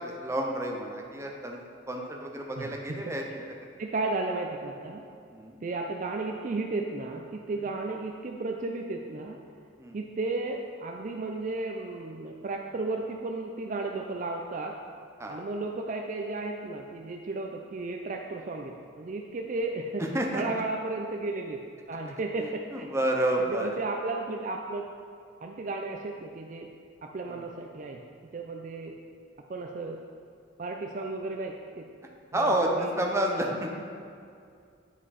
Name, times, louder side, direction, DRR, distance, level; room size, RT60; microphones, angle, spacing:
voice 1, 0.0-1.6 1.9-3.4 5.3-5.5 9.8-10.0 15.2-15.4 20.0-20.4 22.4-23.7 27.3-27.4 32.3-33.7, right 1 dB, 15° right, 0 dB, 0.7 m, -30 dB
voice 2, 2.6-3.0 3.8-5.1 5.6-9.4 9.9-14.8 15.3-20.0 20.3-21.6 21.9-22.9 23.3-24.9 25.4-26.7 27.1-28.0 28.3-28.9 29.5-30.0 30.6-31.9 32.4-33.6, right 3 dB, 40° right, 2 dB, 0.4 m, -34 dB
9.8 x 5.0 x 4.1 m, 2.3 s
head